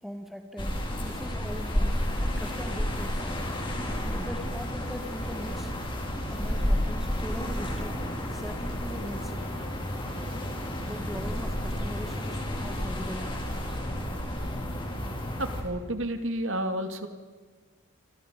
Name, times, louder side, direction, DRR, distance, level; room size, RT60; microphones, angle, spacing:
voice 1, 0.0-0.7 1.0-3.2 4.0-5.7 6.3-9.3 10.9-13.8, equal, ahead, 5 dB, 2.1 m, -40 dB
sound 1, 0.6-15.6, equal, 20° left, 4.4 m, -31 dB
voice 2, 15.4-17.1, right 1 dB, 60° right, 7 dB, 2.5 m, -31 dB
28.5 x 27.0 x 5.4 m, 1.4 s
head